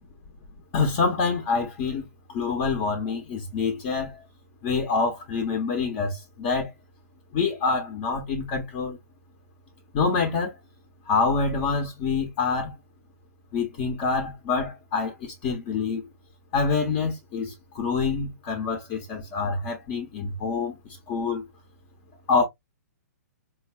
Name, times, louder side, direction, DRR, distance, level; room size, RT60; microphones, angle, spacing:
voice 1, 0.7-4.2 4.6-6.7 7.3-9.0 9.9-10.6 11.1-12.7 13.5-16.1 16.5-21.4 22.3-22.4, left 4 dB, 35° left, 1.0 m, -26 dB
4.4 x 2.6 x 2.3 m
hypercardioid pair, 145°, 9 cm